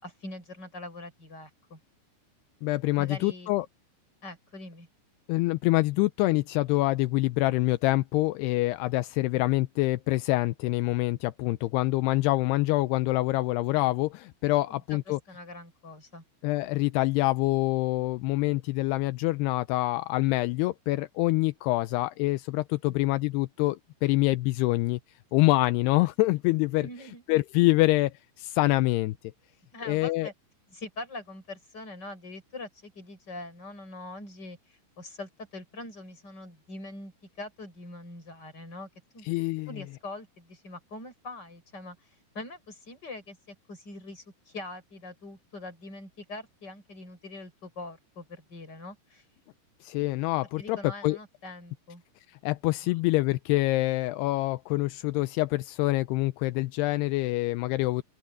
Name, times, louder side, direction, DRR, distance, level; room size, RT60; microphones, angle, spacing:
voice 1, 0.0-1.8 3.0-3.5 4.2-4.9 14.7-16.2 22.9-23.0 26.8-27.2 29.7-30.3 30.7-38.9 39.1-39.3 39.7-42.0 42.3-49.2 50.6-52.0 52.8-52.9, left 2 dB, 25° left, 7.2 m, -43 dB
voice 2, 2.6-3.7 5.3-15.2 16.4-25.0 25.3-26.9 27.3-29.1 29.9-30.3 39.3-39.7 49.8-50.8 51.0-51.2 52.4-58.0, left 19 dB, 85° left, 2.6 m, -26 dB
open air
omnidirectional pair, 4.9 m